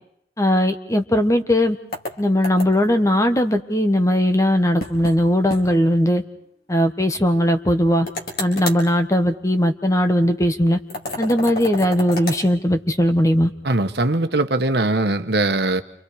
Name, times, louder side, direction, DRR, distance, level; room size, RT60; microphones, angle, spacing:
voice 1, 0.4-1.8 2.2-6.2 6.7-8.1 8.4-10.8 11.2-13.5, equal, 20° left, 7 dB, 1.4 m, -19 dB
sound 1, 1.9-2.9 4.8-5.2 5.5-5.6 6.0-6.1 8.1-8.8 10.9-12.4, left 2 dB, 55° left, 4.2 m, -30 dB
voice 2, 13.6-15.8, right 2 dB, 65° right, 8 dB, 1.3 m, -20 dB
30.0 x 26.5 x 4.9 m, 0.71 s
head